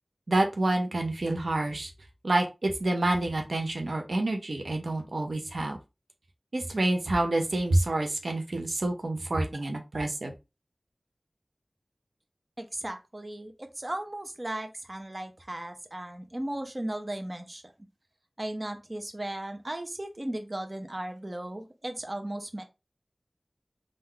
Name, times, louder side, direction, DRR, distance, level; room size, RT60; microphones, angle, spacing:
voice 1, 0.3-1.9 2.2-5.8 6.5-10.3, right 2 dB, 85° right, 3 dB, 0.8 m, -28 dB
voice 2, 12.6-17.6 18.4-22.6, right 1 dB, 40° right, 6 dB, 0.9 m, -36 dB
3.9 x 2.6 x 4.4 m, 0.25 s
wide cardioid pair, 40°, 0 cm